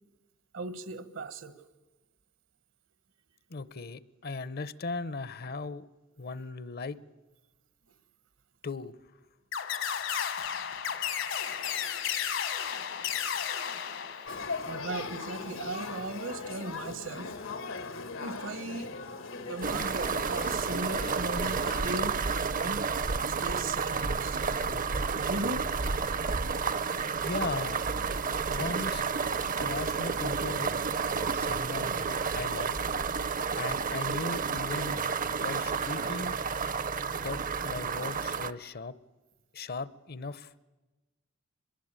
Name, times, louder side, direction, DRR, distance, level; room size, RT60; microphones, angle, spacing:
voice 1, 0.5-1.5 14.6-18.9 19.5-22.9 23.2-25.6, right 2 dB, 70° right, 14 dB, 1.4 m, -38 dB
voice 2, 3.5-5.9 6.2-7.0 8.6-8.9 27.2-27.8 28.5-29.0 29.6-30.7 31.3-32.8 33.6-35.0 35.4-36.4 37.2-38.9 39.5-40.5, left 3 dB, 50° left, 18 dB, 0.8 m, -37 dB
sound 1, 9.5-14.7, left 8 dB, 70° left, 1.4 m, -33 dB
Male speech man speaking / Child speech kid speaking / Conversation, 14.3-22.0, left 4 dB, 90° left, 1.8 m, -39 dB
sound 2, 19.6-38.5, right 5 dB, 45° right, 0.7 m, -31 dB
25.0 x 22.0 x 8.9 m, 1.1 s
head